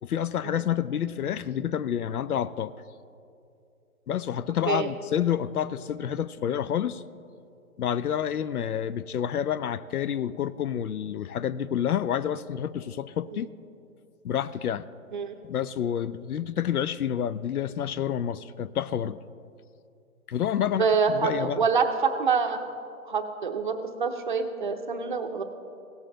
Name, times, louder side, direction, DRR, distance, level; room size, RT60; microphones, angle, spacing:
voice 1, 0.0-2.7 4.1-7.0 7.8-13.5 14.2-14.9 15.4-19.2 20.3-21.6, left 9 dB, 80° left, 16 dB, 0.6 m, -29 dB
voice 2, 20.7-22.6 23.0-25.4, right 5 dB, 35° right, 6 dB, 0.6 m, -26 dB
17.0 x 7.2 x 3.8 m, 2.5 s
hypercardioid pair, 155°, 44 cm